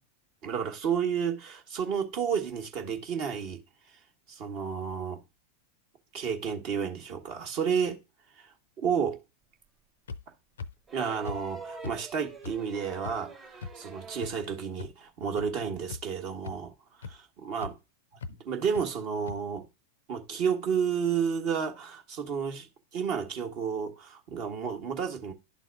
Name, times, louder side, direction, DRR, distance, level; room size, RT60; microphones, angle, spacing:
voice 1, 0.4-3.6 4.3-5.2 6.1-8.0 8.4-9.2 10.9-16.7 17.0-17.8 18.5-19.7 20.1-22.7 22.9-25.3, right 7 dB, 40° right, 1.2 m, -31 dB
sound 1, 10.1-10.2 10.6-10.7 11.2-11.4 11.8-11.9 12.4-12.5 13.0-13.1 13.6-13.7 14.2-14.3 14.8-14.9 15.4-15.5 15.9-16.1 16.4-16.5 17.0-17.1 17.6-17.7 18.2-18.3 18.7-18.8 19.3-19.4, left 4 dB, 65° left, 0.4 m, -38 dB
sound 2, 10.9-14.4 15.8-15.9, right 4 dB, 25° right, 1.4 m, -45 dB
11.5 x 4.0 x 2.4 m
figure-of-eight pair, 90°, 0 cm